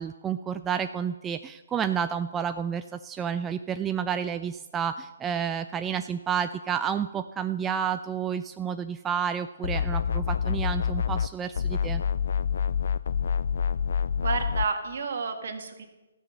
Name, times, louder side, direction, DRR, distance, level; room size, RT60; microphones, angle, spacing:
voice 1, 0.0-12.0, right 8 dB, 15° right, 9 dB, 0.3 m, -30 dB
sound 1, 9.6-11.3 11.5-14.7, left 7 dB, 65° left, 0.3 m, -27 dB
voice 2, 14.2-15.9, right 5 dB, 60° right, 6 dB, 1.7 m, -30 dB
14.0 x 6.0 x 7.7 m, 1.1 s
figure-of-eight pair, 140°, 0 cm